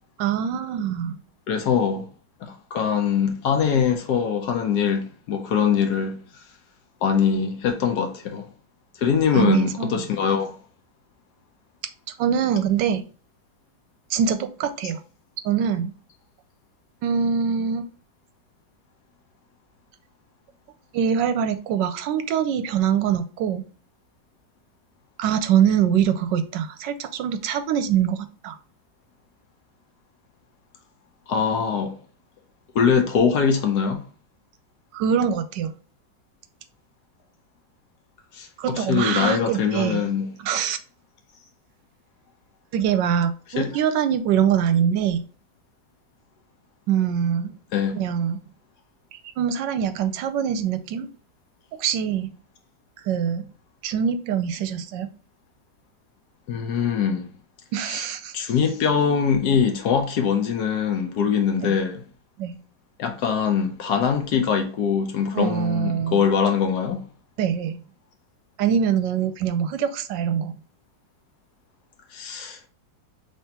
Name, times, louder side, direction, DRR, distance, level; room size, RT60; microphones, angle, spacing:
voice 1, 0.2-1.2 9.3-10.0 12.1-13.0 14.1-15.0 15.4-15.9 17.0-17.9 20.9-23.6 25.2-28.6 34.9-35.7 38.6-40.1 40.4-40.8 42.7-45.2 46.9-47.6 47.9-48.4 49.1-51.1 51.8-52.3 53.0-53.5 53.8-55.1 57.7-58.3 61.7-61.8 62.4-62.6 65.3-66.2 67.4-67.8 68.6-70.6, right 8 dB, 75° right, 1.2 m, -23 dB
voice 2, 1.5-2.1 2.4-6.2 7.0-8.5 9.0-10.6 31.3-31.9 32.7-34.0 38.3-40.3 43.6-43.8 47.7-48.0 56.5-57.3 57.8-58.0 58.3-62.0 63.0-67.0 72.1-72.7, left 7 dB, 65° left, 1.2 m, -22 dB
5.4 x 3.4 x 2.8 m
omnidirectional pair, 2.0 m